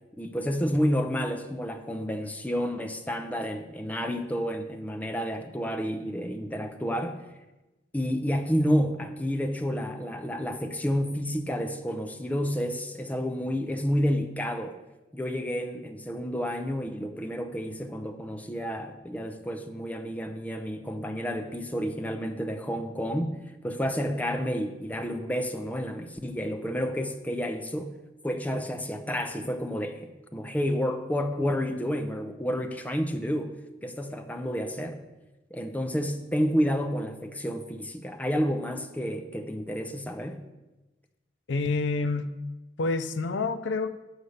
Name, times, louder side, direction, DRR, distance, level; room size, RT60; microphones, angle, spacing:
voice 1, 0.2-7.2 7.9-14.8 15.1-23.4 23.6-27.9 28.2-33.5 33.8-35.0 35.5-40.4, equal, 10° left, 6 dB, 0.6 m, -30 dB
voice 2, 41.5-42.3 42.8-43.9, left 3 dB, 85° left, 12 dB, 0.5 m, -28 dB
8.0 x 5.5 x 6.4 m, 1.1 s
head